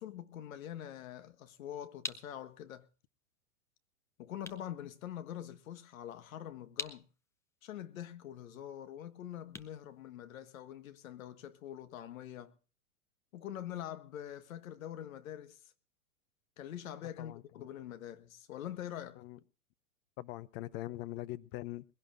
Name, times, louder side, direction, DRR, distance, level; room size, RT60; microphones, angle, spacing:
voice 1, 0.0-2.9 4.2-7.1 7.6-12.5 13.3-15.7 16.6-19.2, left 11 dB, 65° left, 1.6 m, -44 dB
sound 1, 1.8-10.8, left 3 dB, 5° left, 0.6 m, -49 dB
voice 2, 17.2-17.7 19.1-19.4 20.2-21.8, left 17 dB, 40° left, 0.9 m, -42 dB
21.5 x 16.5 x 2.5 m
hypercardioid pair, 120°, 43 cm